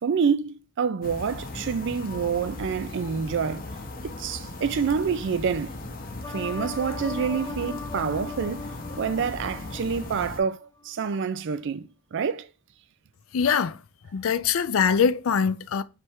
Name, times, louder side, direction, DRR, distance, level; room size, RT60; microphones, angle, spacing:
voice 1, 0.0-3.6 4.0-5.8 6.3-8.7 9.0-12.5, right 6 dB, 60° right, 0.4 m, -27 dB
sound 1, 1.0-10.4, left 2 dB, 45° left, 0.7 m, -38 dB
sound 2, 6.2-10.5 10.8-10.9, left 4 dB, 15° left, 0.4 m, -39 dB
voice 2, 13.3-13.8 14.1-15.8, left 6 dB, 75° left, 0.4 m, -23 dB
3.4 x 3.2 x 4.4 m
head